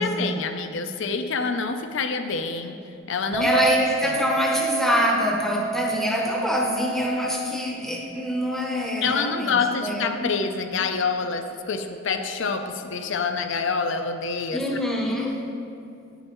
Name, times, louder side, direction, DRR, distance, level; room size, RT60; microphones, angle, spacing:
voice 1, 0.0-2.8 3.1-3.5 4.0-4.1 9.0-14.6, left 4 dB, 60° left, 7 dB, 0.5 m, -26 dB
Chink clink, 3.3-9.6, right 5 dB, 75° right, 1.3 m, -31 dB
voice 2, 3.4-10.4 14.5-15.5, left 1 dB, ahead, -1 dB, 0.8 m, -25 dB
9.7 x 6.5 x 3.0 m, 2.6 s
head